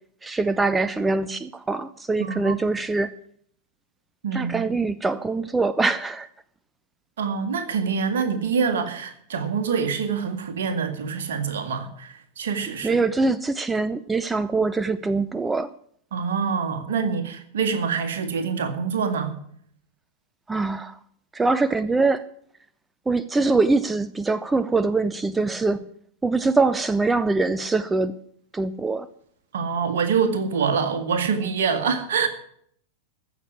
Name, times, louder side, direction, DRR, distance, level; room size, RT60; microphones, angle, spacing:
voice 1, 0.2-3.1 4.3-6.3 12.8-15.7 20.5-21.0 21.3-22.2 23.1-25.8 26.2-28.2 28.5-29.1, right 3 dB, 10° right, 15 dB, 0.5 m, -23 dB
voice 2, 2.2-2.5 4.2-4.7 7.2-13.0 16.1-19.3 29.5-32.3, right 6 dB, 60° right, 7 dB, 1.9 m, -25 dB
15.0 x 6.4 x 9.9 m, 0.65 s
figure-of-eight pair, 90°, 0 cm